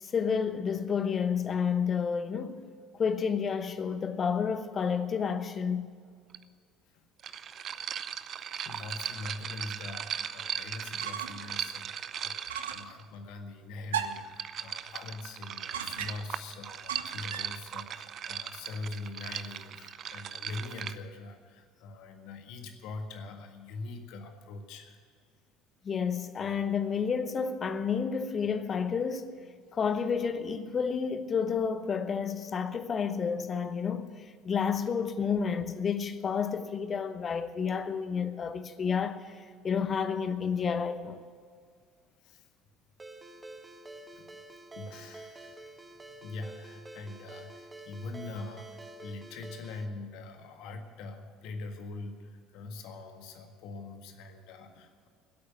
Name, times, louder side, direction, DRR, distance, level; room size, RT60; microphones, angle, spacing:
voice 1, 0.0-2.6 3.0-5.9 25.8-29.3 29.7-34.1 34.4-39.3 39.6-41.2, left 6 dB, 35° left, 1.1 m, -30 dB
sound 1, 6.3-6.4 7.2-13.0 14.0-20.9, right 9 dB, 45° right, 0.6 m, -38 dB
voice 2, 8.6-25.1 29.7-29.8 42.2-42.5 44.1-44.2 44.7-45.9 46.2-55.1, left 3 dB, 60° left, 1.7 m, -43 dB
sound 2, 11.0-11.5 11.9-12.0 12.5-12.9 13.9-14.4 15.7-16.4 16.9-17.6, right 8 dB, 75° right, 0.7 m, -36 dB
Ringtone, 43.0-49.9, right 2 dB, 20° right, 1.4 m, -48 dB
16.0 x 8.6 x 9.3 m
figure-of-eight pair, 60°, 0 cm